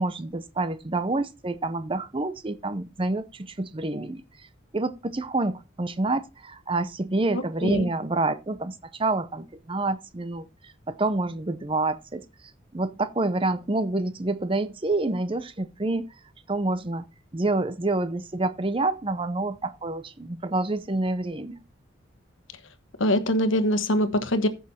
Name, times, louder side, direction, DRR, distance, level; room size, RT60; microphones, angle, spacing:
voice 1, 0.0-4.2 4.7-12.3 12.7-16.1 16.5-17.0 17.3-21.6, right 2 dB, 25° right, 0.6 m, -28 dB
voice 2, 7.3-7.9 23.0-24.5, equal, 80° left, 1.3 m, -23 dB
14.5 x 6.3 x 4.3 m
head